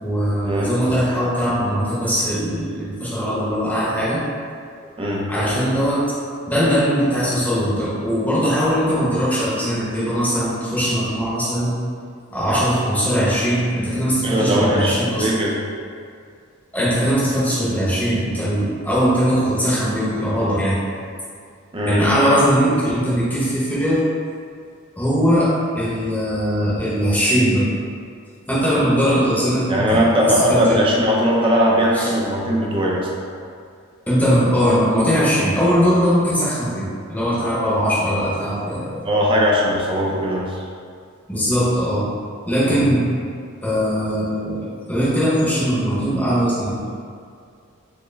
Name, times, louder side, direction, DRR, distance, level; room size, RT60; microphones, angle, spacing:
voice 1, 0.0-4.2 5.3-6.1 6.5-11.7 12.3-15.3 16.7-20.7 21.9-24.0 25.0-27.7 28.5-30.1 30.5-30.8 31.9-32.1 34.1-39.0 41.3-42.1 42.4-43.1 43.6-44.6 44.9-46.9, equal, 5° left, -9 dB, 0.8 m, -20 dB
voice 2, 14.2-15.6 21.7-22.1 29.7-33.1 39.0-40.6 42.7-42.9, equal, 25° right, -3 dB, 0.5 m, -19 dB
4.3 x 2.1 x 3.3 m, 2.2 s
head